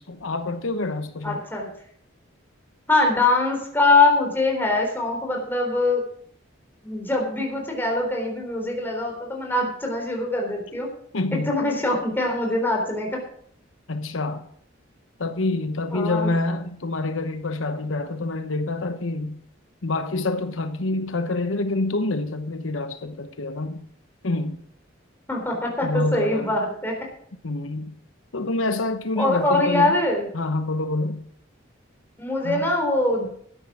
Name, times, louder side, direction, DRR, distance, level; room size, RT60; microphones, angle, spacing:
voice 1, 0.0-1.4 11.1-11.5 13.9-14.5 15.2-19.4 19.8-23.9 24.2-24.6 25.8-26.5 27.4-27.9 28.3-30.0 30.3-31.2 32.4-32.7, left 2 dB, 85° left, 1.0 m, -27 dB
voice 2, 1.2-1.7 2.9-6.0 6.8-10.9 11.3-13.2 15.9-16.3 25.3-27.0 29.2-30.3 32.2-33.3, left 2 dB, 10° left, 3.9 m, -23 dB
13.0 x 9.4 x 6.1 m
head